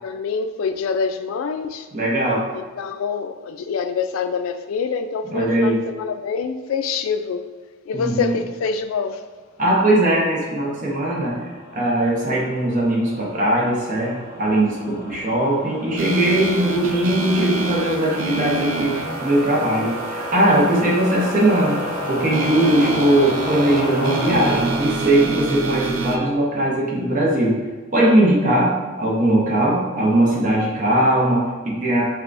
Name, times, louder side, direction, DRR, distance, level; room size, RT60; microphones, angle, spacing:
voice 1, 0.0-1.9 2.5-7.4 7.9-9.2, left 5 dB, 75° left, 8 dB, 0.3 m, -26 dB
voice 2, 1.9-2.4 5.3-5.8 7.9-8.3 9.6-11.4 11.7-21.8 22.1-27.6 27.9-32.0, right 1 dB, 40° right, -4 dB, 0.8 m, -19 dB
sound 1, 10.3-26.8, left 2 dB, 50° left, 0.8 m, -33 dB
sound 2, 16.0-26.2, right 3 dB, 70° right, 0.5 m, -28 dB
4.4 x 3.4 x 2.5 m, 1.4 s
head